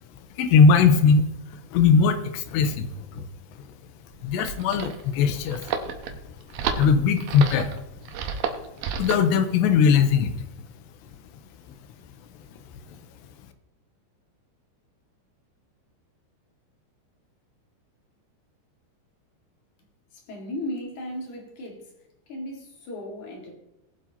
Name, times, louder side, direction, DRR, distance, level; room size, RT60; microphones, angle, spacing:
voice 1, 0.4-3.3 4.2-5.7 6.1-6.2 6.7-7.7 9.0-10.4 12.9-13.0, left 5 dB, 85° left, 8 dB, 3.0 m, -20 dB
sound 1, 4.1-9.3, right 6 dB, 75° right, 2.3 m, -31 dB
voice 2, 20.1-21.9 22.3-23.5, left 1 dB, 50° left, 0 dB, 2.9 m, -36 dB
20.0 x 7.7 x 2.9 m, 0.93 s
omnidirectional pair, 5.1 m